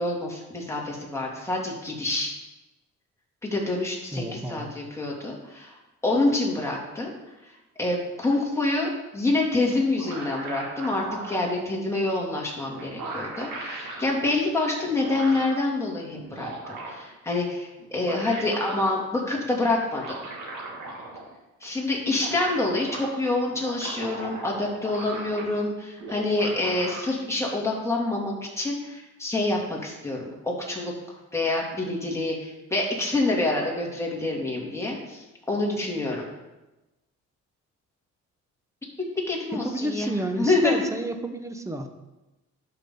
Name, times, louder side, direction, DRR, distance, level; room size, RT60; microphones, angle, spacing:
voice 1, 0.0-2.3 3.4-7.1 7.4-7.5 7.8-20.2 21.6-30.9 31.3-36.2 39.2-40.8, left 2 dB, 10° left, -3 dB, 2.7 m, -27 dB
voice 2, 4.1-4.7 39.5-41.9, right 1 dB, 10° right, 6 dB, 1.1 m, -31 dB
sound 1, 9.7-11.4 12.4-12.5 12.7-14.1 14.8-15.6 16.1-17.1 17.8-19.0 19.9-21.3 21.6-21.7 21.9-23.1 23.5-25.7 26.0-27.0, right 3 dB, 80° right, 2.5 m, -38 dB
11.5 x 6.0 x 3.9 m, 1.1 s
cardioid pair, 90°, 30 cm